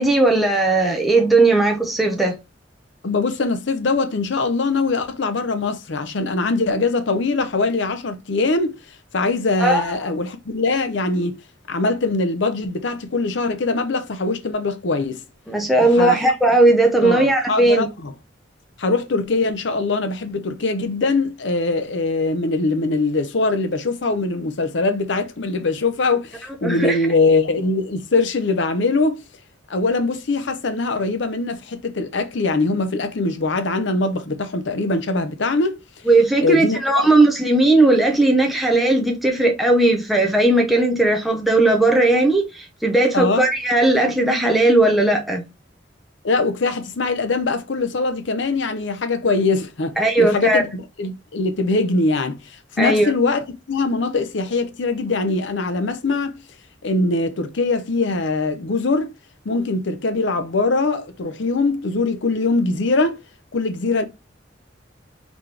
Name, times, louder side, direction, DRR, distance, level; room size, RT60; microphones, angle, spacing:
voice 1, 0.0-2.3 9.6-9.9 15.5-17.9 26.6-27.0 36.1-45.5 50.0-50.6 52.8-53.1, right 2 dB, ahead, 0.6 m, -17 dB
voice 2, 3.0-8.8 9.1-11.4 11.7-15.2 15.8-16.2 17.0-18.1 18.8-29.2 29.7-35.8 36.4-37.1 43.1-43.4 46.2-56.4 56.8-59.1 59.4-63.2 63.5-64.0, left 3 dB, 65° left, 0.7 m, -22 dB
4.1 x 3.0 x 3.3 m
head